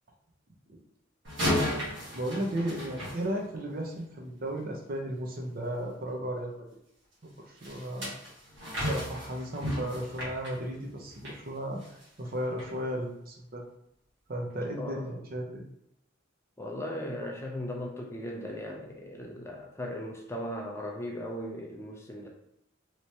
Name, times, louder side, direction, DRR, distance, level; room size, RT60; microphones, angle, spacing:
sound 1, 1.2-3.8 7.6-11.4 11.8-12.0 12.6-12.7, left 1 dB, 65° right, 1.5 m, -34 dB
voice 1, 2.1-6.5 7.5-8.2 8.8-11.8 12.2-13.6 14.3-15.6, right 1 dB, 45° right, 0 dB, 0.6 m, -34 dB
voice 2, 14.8-15.2 16.6-22.3, left 1 dB, 15° left, 0 dB, 0.4 m, -37 dB
3.2 x 3.0 x 2.7 m, 0.81 s
head